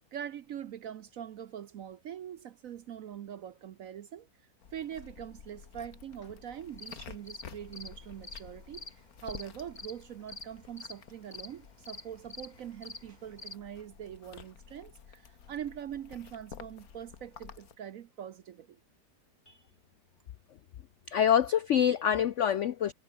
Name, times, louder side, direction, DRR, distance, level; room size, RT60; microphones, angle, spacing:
voice 1, 0.1-4.3 4.7-18.8, right 9 dB, 60° right, 0.9 m, -43 dB
sound 1, 4.6-17.8, left 7 dB, 55° left, 1.9 m, -52 dB
sound 2, 6.5-13.5, left 2 dB, 25° left, 2.4 m, -47 dB
voice 2, 21.1-22.9, left 9 dB, 75° left, 0.6 m, -26 dB
omnidirectional pair, 2.0 m